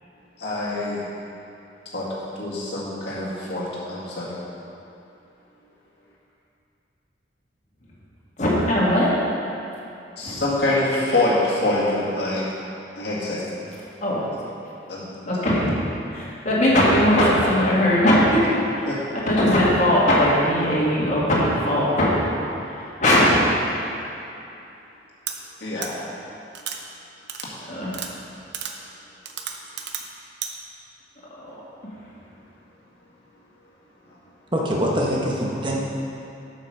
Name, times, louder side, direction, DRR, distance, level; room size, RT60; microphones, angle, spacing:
voice 1, 0.4-1.0 1.9-2.1 2.4-4.4 10.2-12.4 13.0-13.4 14.9-15.3 18.9-19.0 25.6-25.9, left 2 dB, 65° left, -7 dB, 1.9 m, -25 dB
voice 2, 8.4-9.1 10.2-10.4 14.0-14.3 15.3-15.8 16.1-18.9 19.3-22.2 22.6-23.4 27.7-28.0, left 1 dB, 40° left, -7 dB, 2.1 m, -19 dB
sound 1, 25.3-25.4 25.8-25.9 26.5-26.8 27.3-27.5 27.9-28.1 28.5-28.7 29.2-30.0 30.4-30.5, right 8 dB, 70° right, 0.7 m, -31 dB
voice 3, 34.5-35.8, equal, 25° right, -3 dB, 1.2 m, -23 dB
8.1 x 6.0 x 6.6 m, 2.7 s
head